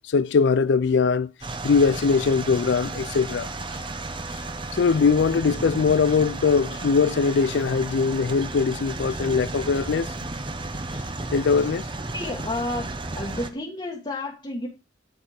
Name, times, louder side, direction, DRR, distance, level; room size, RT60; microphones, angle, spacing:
voice 1, 0.1-1.3 1.6-3.5 4.7-10.3 11.3-11.8, left 5 dB, 75° left, 0.4 m, -21 dB
sound 1, 1.4-13.5, right 2 dB, 30° right, 0.8 m, -33 dB
voice 2, 12.1-12.9 13.2-14.7, left 1 dB, 30° left, 1.3 m, -30 dB
10.0 x 4.3 x 4.9 m
head